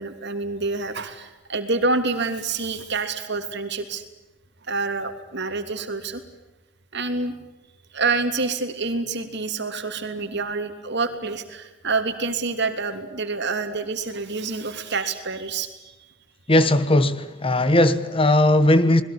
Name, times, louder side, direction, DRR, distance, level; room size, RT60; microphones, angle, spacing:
voice 1, 0.0-4.1 4.7-6.2 6.9-7.3 7.9-15.9, right 3 dB, 55° right, 3.1 m, -27 dB
voice 2, 16.5-19.0, left 1 dB, 25° left, 1.4 m, -18 dB
27.0 x 21.0 x 8.7 m
head